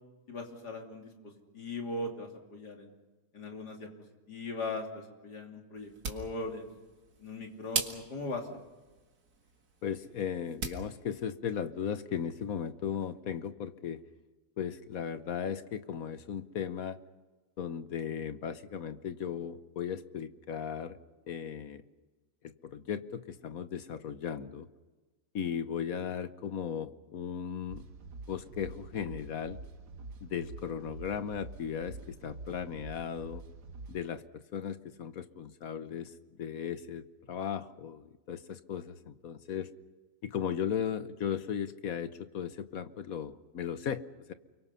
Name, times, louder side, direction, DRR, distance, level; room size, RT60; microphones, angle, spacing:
voice 1, 0.3-1.1 1.5-2.9 3.3-3.9 4.3-6.7 7.2-8.5, left 2 dB, 90° left, 2 dB, 3.5 m, -39 dB
sound 1, 5.8-10.9, right 4 dB, 70° right, 2.4 m, -41 dB
voice 2, 9.8-14.0 14.6-17.0 17.6-21.0 21.3-21.8 22.4-24.7 25.3-27.8 28.3-29.6 30.2-33.4 33.9-39.7 40.2-44.3, left 8 dB, 65° left, 12 dB, 1.3 m, -36 dB
sound 2, 27.7-34.0, right 2 dB, 85° right, 1.8 m, -47 dB
30.0 x 23.5 x 5.7 m, 1.2 s
omnidirectional pair, 1.7 m